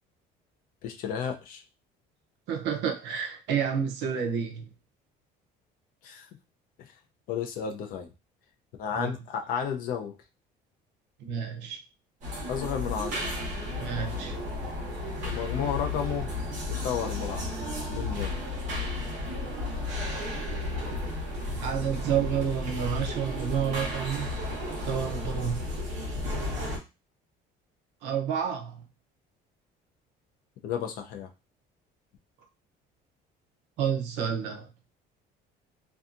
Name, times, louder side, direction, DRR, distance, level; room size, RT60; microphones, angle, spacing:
voice 1, 0.8-1.6 6.0-6.3 7.3-8.1 8.8-10.1 12.5-13.3 15.3-16.3 16.7-17.5 17.9-18.3 30.6-31.3, left 8 dB, 50° left, 0.4 m, -32 dB
voice 2, 2.5-4.7 9.0-9.1 11.2-11.8 13.8-14.4 21.6-24.3 24.8-25.6 28.0-28.8 33.8-34.7, right 8 dB, 75° right, 0.6 m, -30 dB
sound 1, 12.2-26.8, left 1 dB, 45° right, 1.0 m, -33 dB
2.6 x 2.3 x 2.4 m
cardioid pair, 175°, 18 cm